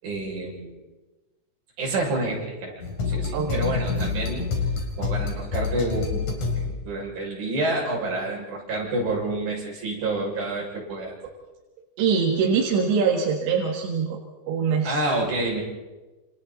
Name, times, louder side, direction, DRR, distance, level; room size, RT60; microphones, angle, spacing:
voice 1, 0.0-0.7 1.8-2.8 3.0-4.5 5.0-11.2 14.8-15.6, right 2 dB, 55° right, -3 dB, 8.1 m, -28 dB
sound 1, 2.8-7.0, left 4 dB, 50° left, 4.5 m, -27 dB
voice 2, 3.3-3.6 12.0-14.2 14.5-15.0, right 6 dB, 85° right, 0 dB, 3.9 m, -23 dB
28.5 x 27.5 x 4.2 m, 1.2 s
omnidirectional pair, 4.9 m